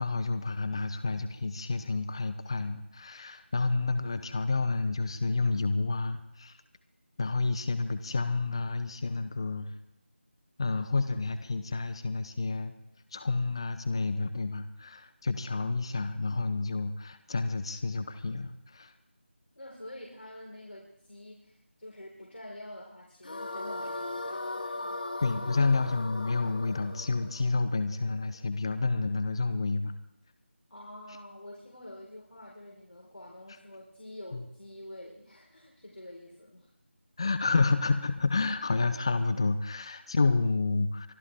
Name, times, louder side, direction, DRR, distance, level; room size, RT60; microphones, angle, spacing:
voice 1, 0.0-6.6 7.2-9.7 10.6-12.7 13.1-18.9 25.2-29.9 34.3-34.4 37.2-41.1, left 3 dB, 25° left, 12 dB, 0.6 m, -29 dB
voice 2, 19.6-25.0 30.7-36.7, left 1 dB, 70° left, -4 dB, 4.3 m, -47 dB
sound 1, 23.2-28.4, left 2 dB, 45° left, 1.6 m, -38 dB
24.5 x 14.5 x 3.5 m, 0.85 s
figure-of-eight pair, 165°, 7 cm